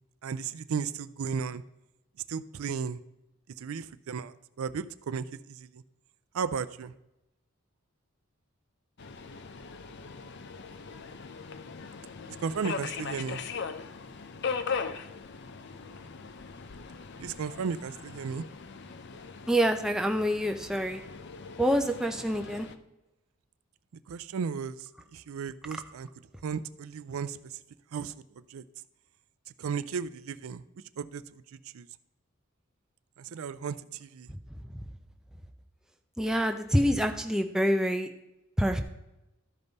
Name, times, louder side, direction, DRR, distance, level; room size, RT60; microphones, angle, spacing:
voice 1, 0.2-1.6 2.3-3.0 3.6-5.8 6.3-6.9 12.4-13.4 17.2-18.4 24.1-24.8 25.1-26.1 26.4-27.4 27.9-28.1 28.5-28.6 29.6-30.6 31.0-31.2 31.7-31.9 33.2-34.3, right 6 dB, 75° right, 14 dB, 0.4 m, -34 dB
Subway metro underground, 9.0-22.8, left 5 dB, 50° left, 0.6 m, -40 dB
voice 2, 19.5-21.0 21.6-22.7 34.3-34.4 36.2-38.1 38.6-38.8, equal, 5° right, 5 dB, 0.6 m, -26 dB
13.0 x 5.3 x 4.0 m, 0.94 s
head